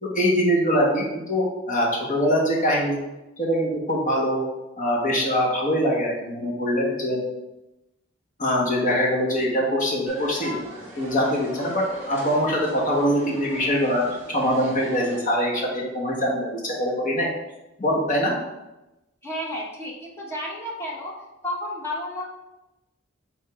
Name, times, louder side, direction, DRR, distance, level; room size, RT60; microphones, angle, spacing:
voice 1, 0.0-3.0 3.4-4.4 4.8-7.2 8.4-10.6 11.0-17.3 17.8-18.4, equal, 40° left, -2 dB, 1.5 m, -23 dB
sound 1, 10.1-15.2, equal, 10° right, 2.1 m, -39 dB
voice 2, 19.2-21.2 21.4-22.3, left 1 dB, 15° left, -2 dB, 1.1 m, -32 dB
8.2 x 3.6 x 3.6 m, 0.98 s
head